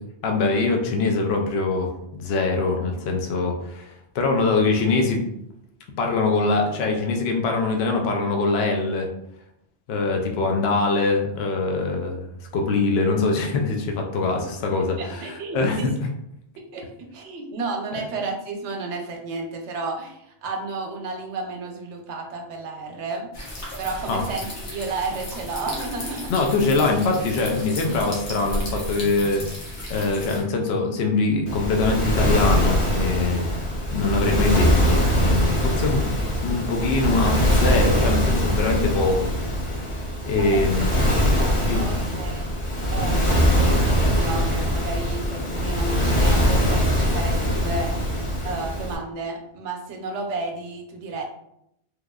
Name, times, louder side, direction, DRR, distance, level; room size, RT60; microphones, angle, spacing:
voice 1, 0.2-5.2 6.0-9.1 9.9-12.2 12.5-15.3 15.5-15.9 24.1-24.2 26.3-33.6 33.9-36.2 36.4-39.3 40.3-41.0 41.6-41.9, left 3 dB, 70° left, 2 dB, 0.8 m, -23 dB
voice 2, 15.0-15.9 16.6-23.3 23.8-26.3 40.4-40.7 41.0-42.5 42.9-51.3, right 3 dB, 80° right, 2 dB, 0.9 m, -32 dB
sound 1, 23.3-30.4, left 1 dB, 85° left, 1.2 m, -34 dB
Waves surf, 31.5-49.0, equal, 35° left, 0.5 m, -22 dB
3.2 x 2.4 x 2.2 m, 0.78 s
omnidirectional pair, 1.2 m